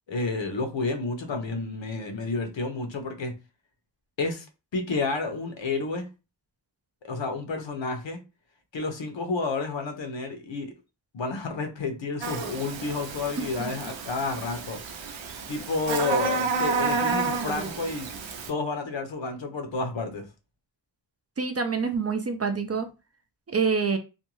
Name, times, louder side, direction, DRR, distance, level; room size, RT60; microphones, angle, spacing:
voice 1, 0.1-3.3 4.2-4.5 4.7-6.1 7.0-8.2 8.7-10.7 11.1-14.8 15.5-18.1 18.5-20.3, left 3 dB, 80° left, 0.7 m, -30 dB
Buzz, 12.2-18.5, right 4 dB, 85° right, 0.6 m, -30 dB
voice 2, 21.4-22.9 23.5-24.0, right 5 dB, 35° right, 0.4 m, -26 dB
2.5 x 2.2 x 3.0 m
wide cardioid pair, 70°, 44 cm